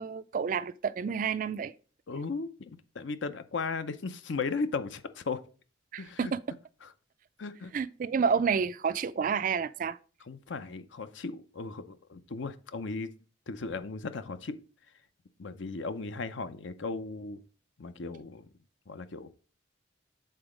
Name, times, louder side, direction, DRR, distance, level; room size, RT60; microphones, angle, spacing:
voice 1, 0.0-1.7 5.9-6.4 7.7-10.0, right 6 dB, 45° right, 0.3 m, -29 dB
voice 2, 2.1-5.4 6.0-6.3 6.8-6.9 7.4-7.7 10.3-13.1 13.5-14.6 15.4-17.4 17.8-18.5 18.9-19.3, left 4 dB, 70° left, 0.6 m, -36 dB
7.8 x 3.9 x 5.0 m
head